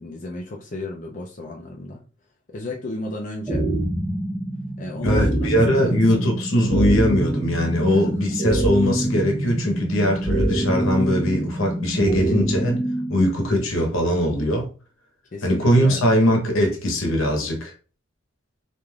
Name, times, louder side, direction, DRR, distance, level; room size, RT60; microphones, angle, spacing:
voice 1, 0.0-2.0 2.5-3.7 4.8-6.1 7.8-8.4 15.3-16.1, left 2 dB, 40° left, 0.4 m, -34 dB
sound 1, 3.5-13.4, right 1 dB, 5° right, 0.7 m, -25 dB
voice 2, 5.0-14.7 15.4-17.7, equal, 80° left, 0.8 m, -21 dB
3.2 x 2.5 x 2.3 m
head